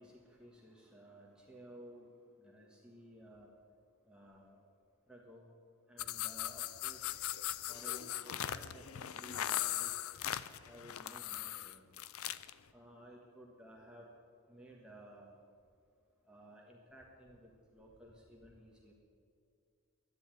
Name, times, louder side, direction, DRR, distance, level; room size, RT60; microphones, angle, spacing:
voice 1, 0.0-2.1 2.4-3.5 4.0-4.6 5.1-5.5 5.9-7.1 7.7-10.0 10.6-11.8 12.7-14.1 14.5-15.3 16.3-18.9, equal, 5° right, -3 dB, 1.4 m, -56 dB
sound 1, 6.0-12.5, left 12 dB, 85° left, 0.5 m, -39 dB
11.0 x 10.5 x 9.1 m, 2.3 s
head